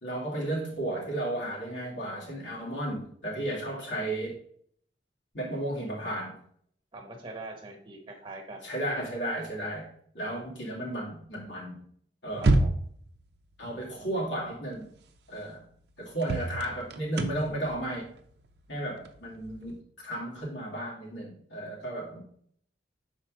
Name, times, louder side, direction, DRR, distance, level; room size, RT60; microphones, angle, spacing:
voice 1, 0.0-4.4 5.3-6.4 8.6-11.8 12.2-12.5 13.6-14.9 15.3-15.6 16.0-18.1 18.7-22.2, right 1 dB, 90° left, -4 dB, 2.3 m, -34 dB
voice 2, 6.9-8.6 12.4-12.7, right 2 dB, 30° right, 3 dB, 1.2 m, -43 dB
sound 1, 12.3-13.1 14.8-14.9 15.4-15.5 16.2-19.8, right 2 dB, 65° right, 0.6 m, -28 dB
6.1 x 4.4 x 3.9 m, 0.63 s
head